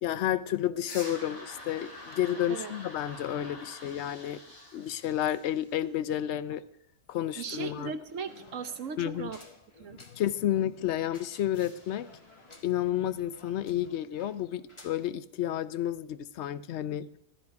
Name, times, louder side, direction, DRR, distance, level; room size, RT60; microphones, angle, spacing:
voice 1, 0.0-4.4 4.7-6.6 7.1-7.9 9.0-9.3 9.9-12.1 12.6-17.1, left 11 dB, 60° left, 15 dB, 0.8 m, -31 dB
sound 1, 0.8-5.9 11.5-12.5, left 1 dB, 85° left, 3.3 m, -47 dB
sound 2, 7.4-15.1, left 2 dB, 20° left, 1.1 m, -55 dB
voice 2, 7.4-9.4 9.8-10.0, right 5 dB, 60° right, 10 dB, 1.1 m, -37 dB
15.0 x 12.5 x 4.7 m, 0.78 s
omnidirectional pair, 1.6 m